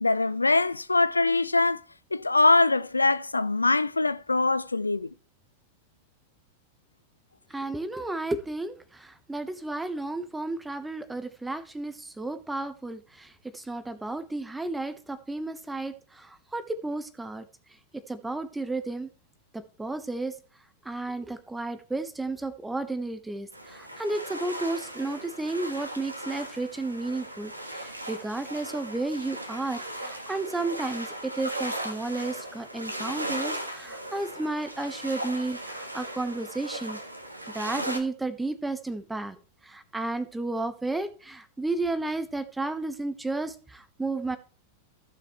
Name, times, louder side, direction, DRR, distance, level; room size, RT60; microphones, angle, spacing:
voice 1, 0.0-1.8 2.1-5.1, left 3 dB, 80° left, 0.3 m, -23 dB
voice 2, 7.5-17.4 17.9-19.1 19.5-20.3 20.8-37.0 37.5-44.4, right 2 dB, 10° right, 1.1 m, -33 dB
sound 1, 23.5-38.0, right 1 dB, 85° right, 1.6 m, -37 dB
15.0 x 6.8 x 3.1 m
figure-of-eight pair, 90°, 0 cm